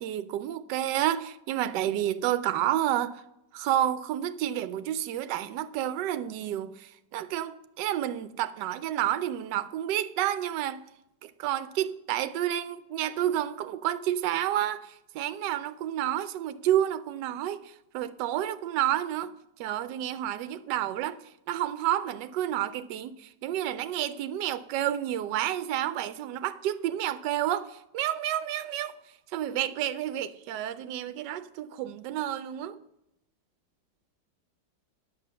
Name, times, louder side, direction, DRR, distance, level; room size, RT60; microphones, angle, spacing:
voice 1, 0.0-3.2 3.5-10.8 11.2-19.3 19.6-21.2 21.5-28.9 29.3-32.8, right 12 dB, 80° right, 1.2 m, -30 dB
9.2 x 6.9 x 6.7 m
omnidirectional pair, 1.9 m